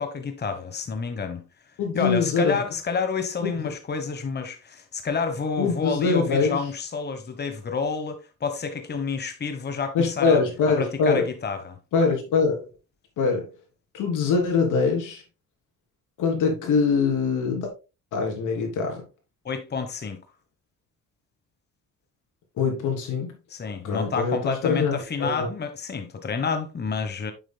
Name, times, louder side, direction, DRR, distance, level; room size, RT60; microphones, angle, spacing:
voice 1, 0.0-1.4 1.9-10.4 10.8-11.8 19.4-20.2 23.5-27.3, left 5 dB, 35° left, 1.2 m, -29 dB
voice 2, 1.8-2.6 3.4-3.7 5.6-6.7 9.9-11.3 11.9-12.7 13.2-13.4 13.9-15.2 16.2-17.7 18.1-19.0 22.6-23.3 23.8-25.5, left 4 dB, 85° left, 3.2 m, -23 dB
9.2 x 7.3 x 2.3 m
cardioid pair, 90°, 30 cm